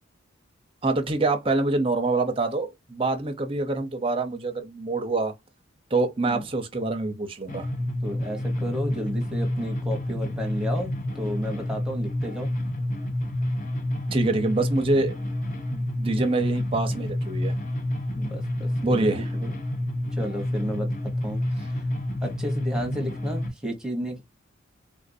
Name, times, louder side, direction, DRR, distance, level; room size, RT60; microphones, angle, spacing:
voice 1, 0.8-5.3 5.9-7.7 14.1-15.2 15.7-17.6 18.8-19.3, right 2 dB, 25° right, 0.6 m, -25 dB
sound 1, 7.5-23.5, left 1 dB, 40° left, 0.8 m, -29 dB
voice 2, 8.0-12.5 18.1-19.5 20.1-21.4 21.7-21.8 22.2-24.2, equal, 5° right, 0.9 m, -33 dB
3.6 x 2.5 x 2.6 m
head